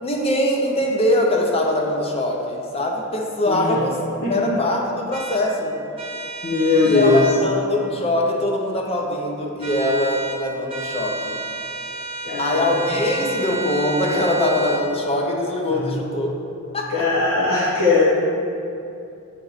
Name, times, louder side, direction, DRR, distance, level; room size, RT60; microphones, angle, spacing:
voice 1, 0.0-4.0 4.3-5.7 6.8-11.4 12.4-16.3 16.7-17.0, left 1 dB, 25° left, 0 dB, 0.6 m, -22 dB
voice 2, 3.5-3.8 4.2-4.3 6.4-7.2 12.2-12.8 15.8-16.0 16.9-18.0, left 3 dB, 85° left, -9 dB, 1.0 m, -19 dB
sound 1, 5.1-5.4 6.0-7.4 9.6-10.4 10.7-14.8, right 3 dB, 25° right, 0.5 m, -31 dB
8.1 x 3.0 x 3.9 m, 2.6 s
head